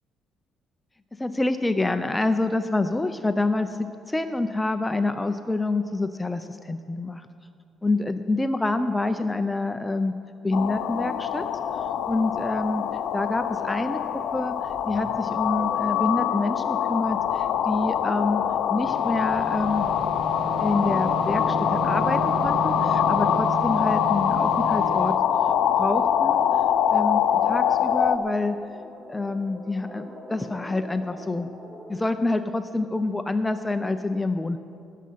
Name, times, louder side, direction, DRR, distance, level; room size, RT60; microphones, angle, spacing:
voice 1, 1.2-7.3 7.8-10.1 10.4-11.5 12.1-12.9 13.1-14.6 14.9-18.4 18.7-19.9 20.6-25.1 25.7-26.4 26.9-28.6 29.1-31.5 31.9-34.6, left 2 dB, 10° left, 9 dB, 0.4 m, -27 dB
sound 1, 10.5-28.2, left 9 dB, 70° left, 0.6 m, -24 dB
sound 2, 18.8-25.2, right 6 dB, 50° right, 0.4 m, -33 dB
sound 3, 20.4-31.9, equal, 15° right, 2.9 m, -43 dB
20.0 x 7.4 x 5.6 m, 2.5 s
cardioid pair, 145°, 0 cm